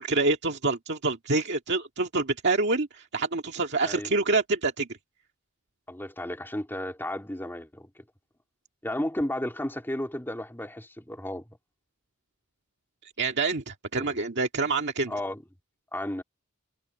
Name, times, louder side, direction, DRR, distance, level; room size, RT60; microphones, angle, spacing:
voice 1, 0.0-4.9 13.0-15.1, right 3 dB, 55° right, 1.9 m, -27 dB
voice 2, 5.9-7.9 8.8-11.4 14.0-14.2 15.1-15.4 15.9-16.2, left 1 dB, 10° left, 2.9 m, -33 dB
head